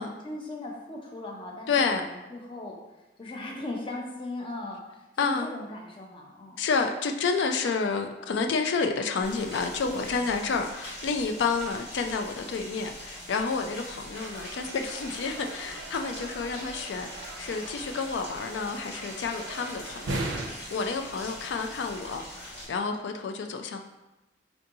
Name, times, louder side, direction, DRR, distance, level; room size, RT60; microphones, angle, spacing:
voice 1, 0.0-6.6 9.9-10.5 13.7-14.3, left 2 dB, 30° left, -1 dB, 0.5 m, -39 dB
voice 2, 1.7-2.1 5.2-5.5 6.6-20.2 20.7-23.8, left 4 dB, 75° left, 5 dB, 0.3 m, -29 dB
Rain, 9.2-22.7, equal, 60° left, 1.3 m, -43 dB
sound 1, 14.1-20.5, right 2 dB, 85° right, 0.5 m, -39 dB
4.4 x 2.6 x 2.6 m, 1.0 s
head